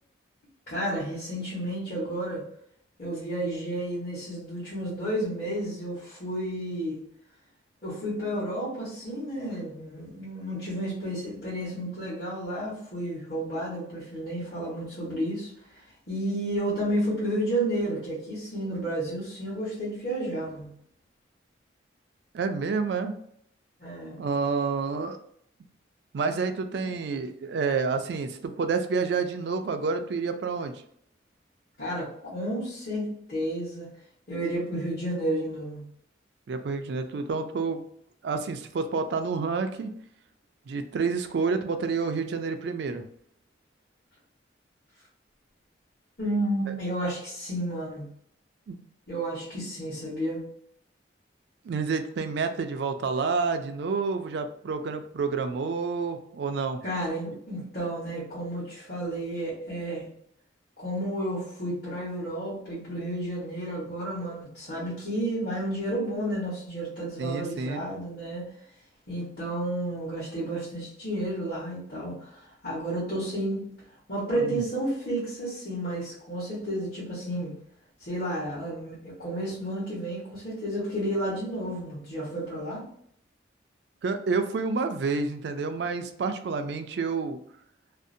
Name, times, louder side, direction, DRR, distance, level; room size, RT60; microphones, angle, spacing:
voice 1, 0.7-2.4 3.0-7.0 7.8-15.5 16.1-20.7 23.8-24.2 31.8-33.9 34.3-35.8 46.2-48.1 49.1-50.4 56.8-60.1 60.8-68.5 69.1-73.7 74.1-77.5 78.0-82.8, right 1 dB, 50° left, -9 dB, 1.1 m, -31 dB
voice 2, 22.3-23.1 24.2-25.2 26.1-30.7 36.5-37.8 38.2-39.9 40.7-43.0 46.7-46.8 48.7-48.8 51.6-56.8 67.2-67.8 74.4-74.6 84.0-87.4, right 4 dB, 65° right, 8 dB, 0.3 m, -29 dB
2.6 x 2.0 x 2.5 m, 0.67 s
head